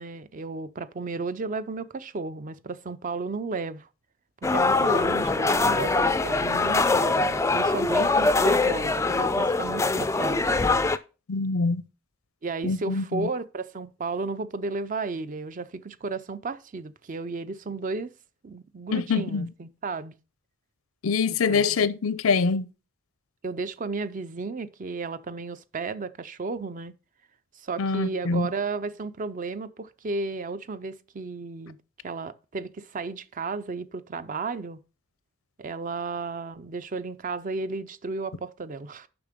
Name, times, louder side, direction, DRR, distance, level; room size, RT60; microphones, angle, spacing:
voice 1, 0.0-3.9 4.5-10.4 12.4-18.1 18.4-20.1 21.5-21.9 23.4-26.9 27.6-31.8 32.0-34.8 35.6-39.1, right 3 dB, 40° right, 0.5 m, -33 dB
sound 1, 4.4-11.0, left 3 dB, 15° left, 0.3 m, -23 dB
voice 2, 11.3-11.8 12.6-13.3 18.9-19.5 21.0-22.7 27.8-28.5, left 4 dB, 85° left, 0.5 m, -25 dB
7.1 x 5.8 x 5.0 m
head